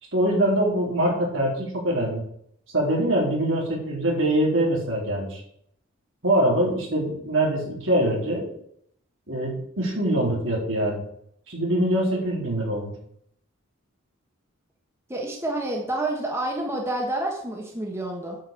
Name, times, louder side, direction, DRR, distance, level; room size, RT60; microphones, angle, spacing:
voice 1, 0.1-2.2 2.7-5.4 6.2-8.5 9.3-11.0 11.5-12.9, right 1 dB, 70° right, -2 dB, 4.0 m, -23 dB
voice 2, 15.1-18.4, right 1 dB, 15° right, -1 dB, 1.4 m, -28 dB
8.9 x 5.3 x 7.5 m, 0.69 s
head